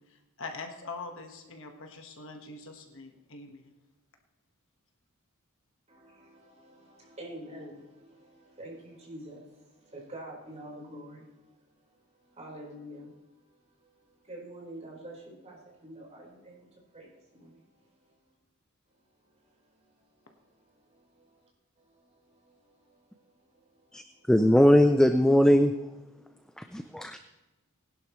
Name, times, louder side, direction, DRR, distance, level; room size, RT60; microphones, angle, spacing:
voice 1, 0.1-3.6, left 3 dB, 60° left, 4 dB, 1.4 m, -43 dB
voice 2, 5.9-18.3 19.1-21.5 21.8-24.3, right 1 dB, 30° right, -3 dB, 4.3 m, -49 dB
voice 3, 24.3-25.7 26.6-27.2, equal, 5° left, 8 dB, 0.4 m, -20 dB
20.0 x 11.0 x 3.1 m, 1.1 s
head